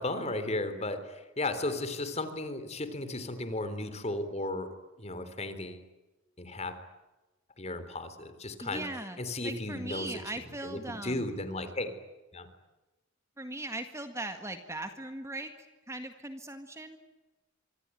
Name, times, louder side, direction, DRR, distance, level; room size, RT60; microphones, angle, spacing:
voice 1, 0.0-4.7 5.0-5.8 6.4-6.7 7.6-8.8 9.2-10.2 10.6-11.9 12.3-12.5, left 2 dB, 30° left, 11 dB, 3.5 m, -35 dB
voice 2, 8.6-9.2 9.4-11.3 13.4-17.0, right 2 dB, 15° right, 7 dB, 1.8 m, -39 dB
25.5 x 25.5 x 9.2 m, 1.1 s
head